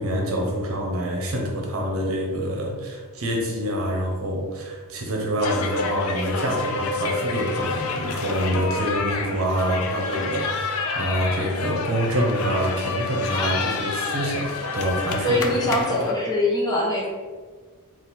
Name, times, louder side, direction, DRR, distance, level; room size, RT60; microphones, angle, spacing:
voice 1, 0.0-15.8, equal, 65° right, -1 dB, 0.8 m, -26 dB
sound 1, 5.4-16.1, left 4 dB, 75° left, 0.5 m, -28 dB
voice 2, 15.2-17.1, left 1 dB, 20° left, -4 dB, 0.8 m, -22 dB
4.0 x 2.5 x 4.0 m, 1.5 s
head